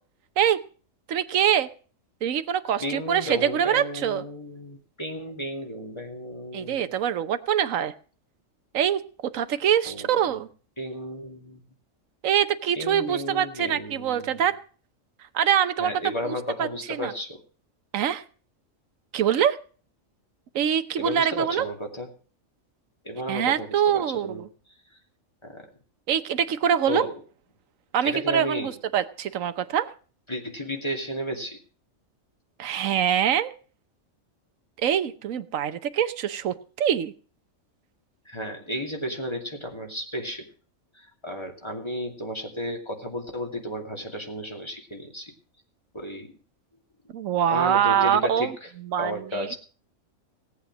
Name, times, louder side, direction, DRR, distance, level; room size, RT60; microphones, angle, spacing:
voice 1, 1.1-1.7 2.2-4.2 6.5-7.9 8.7-10.5 12.2-14.6 15.3-16.2 16.6-16.7 17.0-17.1 17.9-18.2 19.1-19.6 20.5-21.7 23.3-24.5 26.1-27.1 27.9-29.9 32.6-33.5 34.8-37.1 47.1-48.5 48.9-49.5, right 9 dB, 80° right, 12 dB, 1.3 m, -24 dB
voice 2, 2.8-6.9 9.8-10.4 10.8-11.6 12.7-14.4 15.8-17.4 21.0-22.1 23.0-24.8 25.4-25.7 26.9-27.2 28.0-28.7 30.3-31.6 38.2-40.5 40.9-45.3 45.9-46.3 47.5-48.7 49.0-49.6, equal, 20° left, 3 dB, 2.5 m, -33 dB
18.0 x 8.8 x 6.1 m, 0.39 s
omnidirectional pair, 1.4 m